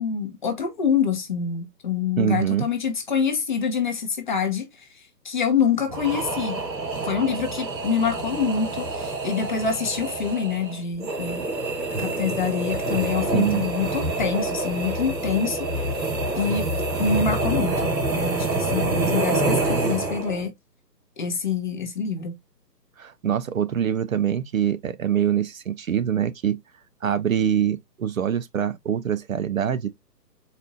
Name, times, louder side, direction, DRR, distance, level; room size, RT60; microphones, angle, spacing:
voice 1, 0.0-4.7 4.9-6.6 7.0-11.5 12.0-15.7 16.3-16.7 17.0-20.5 21.2-22.4, left 6 dB, 30° left, 0.7 m, -26 dB
voice 2, 2.2-2.7 13.3-13.6 23.0-26.6 27.0-29.9, right 9 dB, 55° right, 0.5 m, -24 dB
sound 1, 5.9-20.5, right 2 dB, 85° right, 2.0 m, -27 dB
4.2 x 2.5 x 3.6 m
figure-of-eight pair, 145°, 49 cm